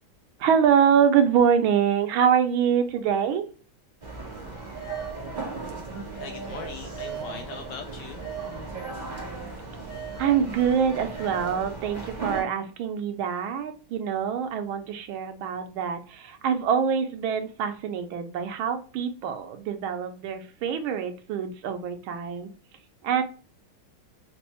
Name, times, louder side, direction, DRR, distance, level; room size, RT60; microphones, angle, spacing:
voice 1, 0.4-3.4 10.2-22.5 23.0-23.2, right 7 dB, 85° right, 7 dB, 1.5 m, -25 dB
sound 1, 4.0-12.4, right 4 dB, 30° right, 0.8 m, -36 dB
voice 2, 5.8-8.3, left 6 dB, 75° left, 3 dB, 1.1 m, -41 dB
5.1 x 2.0 x 2.8 m, 0.36 s
omnidirectional pair, 2.3 m